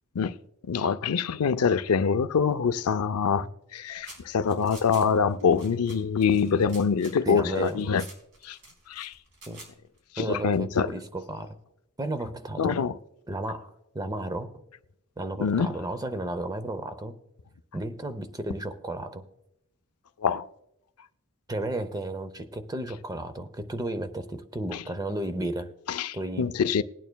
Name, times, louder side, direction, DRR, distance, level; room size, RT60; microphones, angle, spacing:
voice 1, 0.7-8.1 8.4-8.6 8.9-9.1 10.1-10.9 12.6-13.0 15.4-15.8 20.2-20.5 24.7-24.8 25.9-26.8, left 6 dB, 80° left, 0.5 m, -25 dB
sound 1, 3.8-10.0, right 1 dB, 65° right, 4.1 m, -49 dB
voice 2, 7.3-7.9 9.5-9.6 10.2-11.6 12.0-12.8 13.3-14.5 15.2-17.2 17.7-19.2 21.5-25.7 26.1-26.5, right 1 dB, 15° right, 0.6 m, -33 dB
20.0 x 9.1 x 2.2 m
head